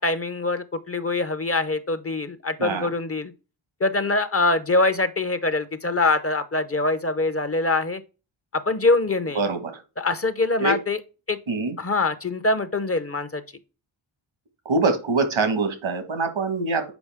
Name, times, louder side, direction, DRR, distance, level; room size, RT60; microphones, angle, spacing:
voice 1, 0.0-3.3 3.8-8.0 8.5-9.4 10.0-11.0 11.3-11.4 11.8-13.4, left 2 dB, 30° left, 0.7 m, -24 dB
voice 2, 9.3-9.8 10.6-10.8 11.5-11.7 14.6-16.9, right 3 dB, 90° right, 1.6 m, -24 dB
7.0 x 4.9 x 3.5 m
wide cardioid pair, 105°, 47 cm